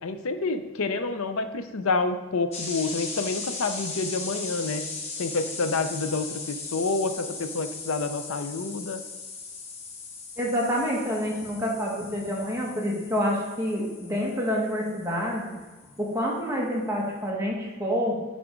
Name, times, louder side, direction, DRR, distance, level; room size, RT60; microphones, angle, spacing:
voice 1, 0.0-4.8 5.2-9.0, left 3 dB, 80° left, 9 dB, 0.6 m, -28 dB
sound 1, 2.5-16.1, left 4 dB, 30° left, 1.0 m, -38 dB
voice 2, 10.4-15.5 16.0-18.2, equal, 10° right, -4 dB, 1.4 m, -28 dB
9.8 x 3.5 x 5.1 m, 1.3 s
head